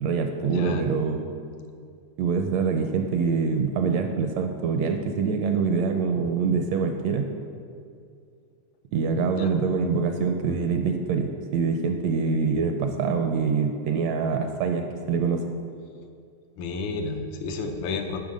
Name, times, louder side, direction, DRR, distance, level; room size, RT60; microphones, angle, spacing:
voice 1, 0.0-1.2 2.2-7.3 8.9-15.4, right 5 dB, 80° right, 5 dB, 1.6 m, -25 dB
voice 2, 0.5-0.9 9.4-9.5 16.6-18.2, left 4 dB, 90° left, 4 dB, 2.2 m, -31 dB
13.0 x 5.7 x 5.1 m, 2.3 s
omnidirectional pair, 3.3 m